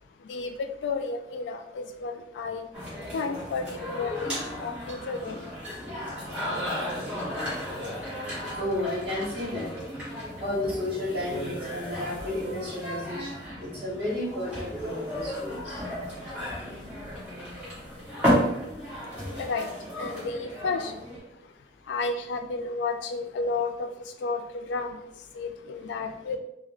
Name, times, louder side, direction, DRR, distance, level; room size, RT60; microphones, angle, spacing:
voice 1, 0.3-2.6 3.1-5.4 19.4-19.7 20.0-20.9 21.9-23.9 24.2-25.0 25.3-26.4, left 4 dB, 85° left, 6 dB, 0.3 m, -32 dB
sound 1, 2.7-21.2, equal, 5° right, 1.3 m, -33 dB
voice 2, 6.0-9.7 10.4-13.3 13.6-15.8, left 1 dB, 30° right, -6 dB, 1.5 m, -33 dB
3.6 x 2.1 x 3.2 m, 0.83 s
head